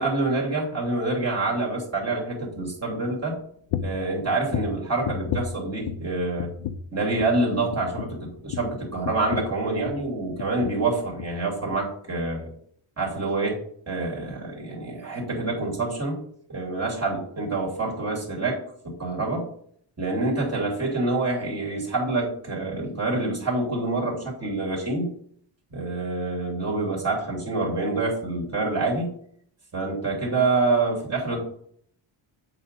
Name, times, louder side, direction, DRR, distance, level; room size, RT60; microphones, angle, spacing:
voice 1, 0.0-3.4 3.8-6.5 6.9-12.5 13.0-13.6 13.9-16.2 16.5-19.5 20.0-25.1 25.7-29.1 29.7-31.4, right 2 dB, 30° right, -2 dB, 2.9 m, -26 dB
sound 1, 3.7-4.1 4.5-6.1 6.4-6.9 7.2-7.4 7.7-10.1 10.4-10.9 11.2-11.4 11.7-11.8, left 8 dB, 65° left, 0.6 m, -33 dB
8.1 x 4.1 x 5.2 m, 0.62 s
wide cardioid pair, 145°, 49 cm